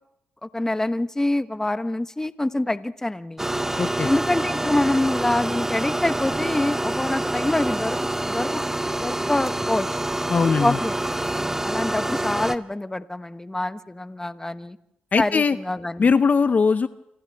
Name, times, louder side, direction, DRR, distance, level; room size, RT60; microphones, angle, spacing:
voice 1, 0.4-3.5 4.0-8.6 9.0-9.9 10.6-11.0 11.6-14.8 15.2-16.1, left 1 dB, 15° left, 12 dB, 1.0 m, -25 dB
sound 1, 3.4-12.6, right 1 dB, 10° right, 0.8 m, -26 dB
voice 2, 3.8-4.1 10.3-10.8 15.1-15.6 16.0-16.9, left 5 dB, 45° left, 12 dB, 0.7 m, -20 dB
29.5 x 26.5 x 3.5 m, 0.81 s
cardioid pair, 65°, 4 cm